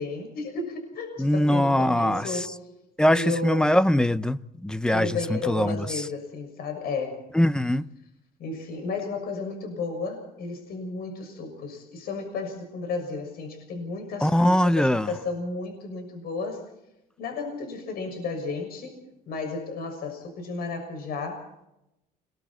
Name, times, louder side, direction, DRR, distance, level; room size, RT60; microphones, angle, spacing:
voice 1, 0.0-2.5 3.1-3.8 4.9-7.2 8.4-16.6 17.2-21.5, left 3 dB, 65° left, 6.6 m, -33 dB
voice 2, 1.2-2.4 3.0-5.8 7.3-7.9 14.2-15.1, left 1 dB, 5° left, 0.8 m, -22 dB
29.5 x 21.5 x 4.4 m
cardioid pair, 110°, 17 cm